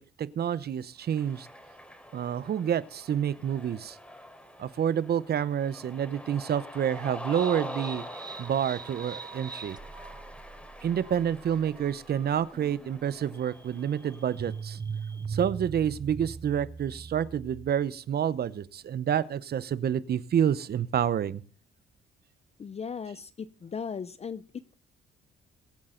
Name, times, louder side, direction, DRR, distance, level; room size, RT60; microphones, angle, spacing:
voice 1, 0.0-1.5 2.1-4.0 4.6-8.0 8.4-9.8 10.8-14.8 15.3-21.4, right 9 dB, 55° right, 18 dB, 0.8 m, -28 dB
Cheering, 1.0-14.5, equal, 5° left, 3.3 m, -45 dB
sound 1, 7.3-17.9, right 5 dB, 20° right, 0.6 m, -41 dB
voice 2, 22.6-24.7, left 6 dB, 30° left, 15 dB, 0.6 m, -37 dB
23.0 x 8.7 x 3.9 m, 0.39 s
cardioid pair, 90°, 20 cm